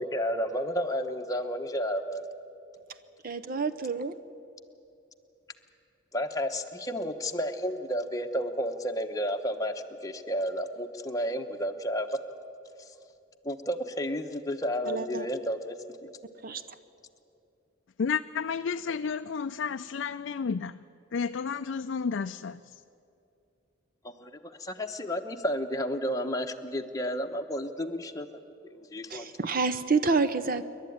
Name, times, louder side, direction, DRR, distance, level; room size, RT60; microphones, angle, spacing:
voice 1, 0.0-2.2 6.1-9.7 10.0-12.2 13.4-15.8 24.0-28.3 28.9-29.3, equal, 15° left, 4 dB, 1.0 m, -31 dB
voice 2, 3.2-4.1 14.9-15.3 16.4-16.6 29.1-30.7, right 4 dB, 45° right, 12 dB, 0.7 m, -28 dB
voice 3, 18.0-20.8 21.1-22.8, left 6 dB, 65° left, 8 dB, 0.4 m, -31 dB
27.5 x 12.0 x 9.3 m, 2.7 s
head